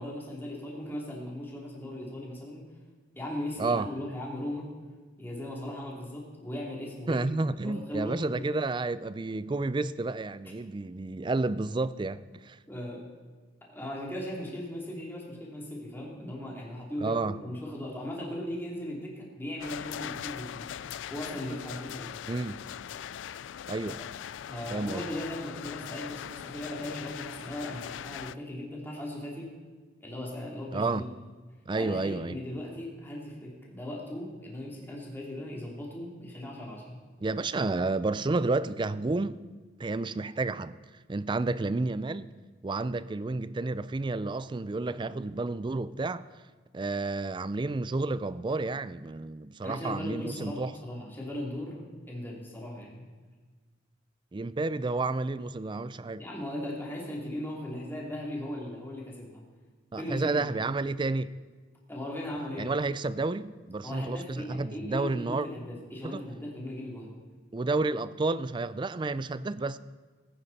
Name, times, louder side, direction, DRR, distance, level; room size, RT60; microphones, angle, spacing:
voice 1, 0.0-2.7 3.1-4.7 5.2-7.2 7.6-8.5 12.7-13.1 13.6-20.7 21.1-22.2 24.0-24.1 24.4-29.5 30.0-31.1 31.8-37.0 49.6-53.1 56.2-59.4 60.0-60.6 61.9-62.8 63.8-67.2, left 1 dB, 10° left, 2.9 m, -38 dB
voice 2, 3.6-3.9 7.1-12.6 17.0-17.4 22.3-22.6 23.7-24.0 24.7-25.0 30.7-31.0 31.7-32.4 37.2-39.4 39.8-40.7 41.1-42.3 42.6-46.2 46.7-50.7 54.3-56.2 59.9-61.3 62.6-65.5 66.0-66.2 67.5-69.8, right 3 dB, 25° right, 0.4 m, -30 dB
sound 1, 19.6-28.4, left 9 dB, 90° left, 0.3 m, -40 dB
20.5 x 9.4 x 4.2 m
head